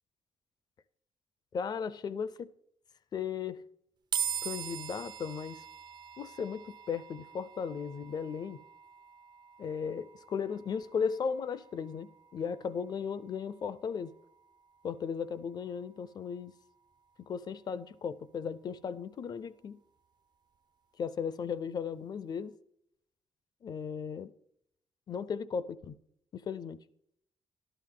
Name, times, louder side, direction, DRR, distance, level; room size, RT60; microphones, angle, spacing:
voice 1, 1.5-2.5 3.1-3.6 4.4-5.6 6.2-8.6 9.6-14.1 14.8-16.5 17.3-19.8 21.0-22.6 23.6-24.3 25.1-26.0 26.3-26.8, left 6 dB, 40° left, 0.5 m, -36 dB
sound 1, 4.1-17.5, right 8 dB, 45° right, 0.4 m, -44 dB
12.5 x 12.0 x 3.8 m
wide cardioid pair, 175°, 10 cm